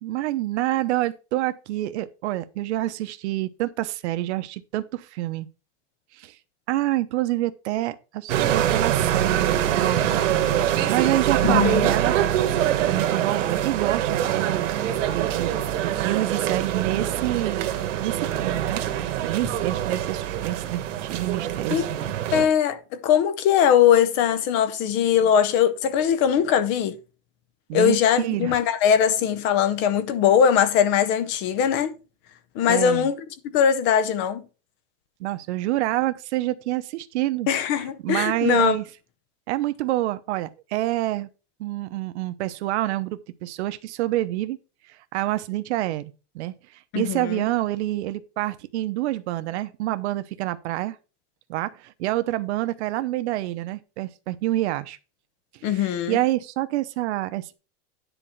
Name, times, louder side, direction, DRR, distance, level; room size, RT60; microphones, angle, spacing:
voice 1, 0.0-5.5 6.2-6.3 6.7-10.2 10.9-12.1 12.8-14.7 15.1-15.5 15.8-17.7 18.0-18.8 19.2-21.8 27.7-28.6 32.7-33.1 35.2-37.5 38.0-38.8 39.5-41.3 41.6-44.6 45.1-46.5 46.9-51.0 51.5-55.0 55.7-57.5, right 16 dB, 65° right, 0.9 m, -27 dB
sound 1, 8.3-22.5, right 11 dB, 90° right, 1.6 m, -24 dB
voice 2, 11.4-11.9 21.7-21.9 22.3-27.0 27.7-31.9 32.5-33.2 33.5-34.4 37.5-38.8 46.9-47.4 55.6-56.2, left 8 dB, 30° left, 0.7 m, -21 dB
10.0 x 4.4 x 5.8 m
supercardioid pair, 170°, 36 cm